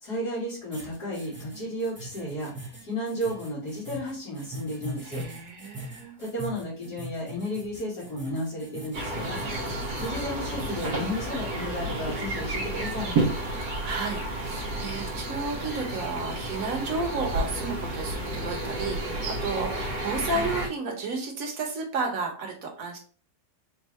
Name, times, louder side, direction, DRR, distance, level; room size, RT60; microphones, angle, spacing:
voice 1, 0.0-5.2 6.2-9.4 10.0-13.1, equal, 75° left, -9 dB, 2.3 m, -33 dB
sound 1, 0.7-11.0, equal, 15° right, 0.4 m, -41 dB
voice 2, 5.0-6.2 13.6-23.0, right 3 dB, 60° right, 1 dB, 1.4 m, -32 dB
sound 2, 8.9-20.7, right 2 dB, 85° right, 1.4 m, -31 dB
4.5 x 2.5 x 3.1 m, 0.40 s
omnidirectional pair, 1.7 m